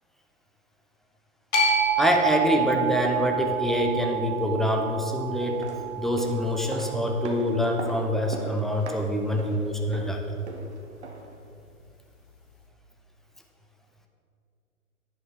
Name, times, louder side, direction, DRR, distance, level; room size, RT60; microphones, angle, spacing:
sound 1, 1.5-7.8, right 5 dB, 55° left, 2.0 m, -28 dB
voice 1, 2.0-5.6 6.0-10.2, left 1 dB, ahead, 2 dB, 0.3 m, -25 dB
sound 2, 5.4-11.4 11.7-11.8, right 2 dB, 50° right, 1.2 m, -40 dB
10.5 x 10.5 x 3.6 m, 2.5 s
hypercardioid pair, 180°, 44 cm